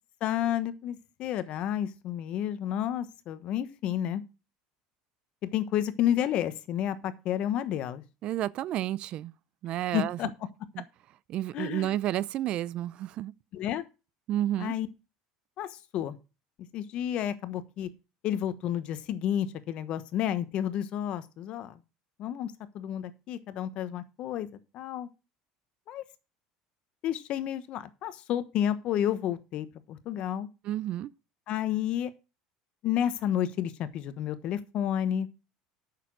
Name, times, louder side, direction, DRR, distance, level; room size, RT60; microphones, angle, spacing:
voice 1, 0.2-4.2 5.4-8.0 9.9-10.3 11.5-12.0 13.5-13.8 14.6-14.9 15.6-16.2 16.7-17.9 18.2-21.8 22.2-24.5 24.7-25.1 25.9-26.0 27.0-30.5 31.5-32.1 32.8-35.3, left 10 dB, 55° left, 1.2 m, -31 dB
voice 2, 8.2-9.3 9.6-10.2 10.8-10.9 11.3-13.3 14.3-14.8 30.6-31.1, right 13 dB, 50° right, 0.5 m, -31 dB
8.9 x 6.8 x 6.2 m
supercardioid pair, 115°, 2 cm